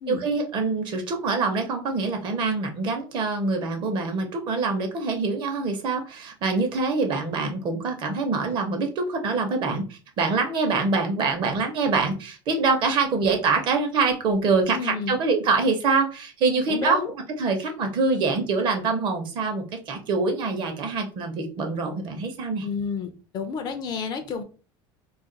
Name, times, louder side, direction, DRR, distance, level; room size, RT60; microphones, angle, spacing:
voice 1, 0.1-17.0 17.4-22.7, right 4 dB, 40° right, 0.8 m, -25 dB
voice 2, 14.7-15.1 16.7-17.1 22.6-24.4, left 6 dB, 35° left, 0.5 m, -30 dB
2.4 x 2.3 x 3.8 m
cardioid pair, 150°, 12 cm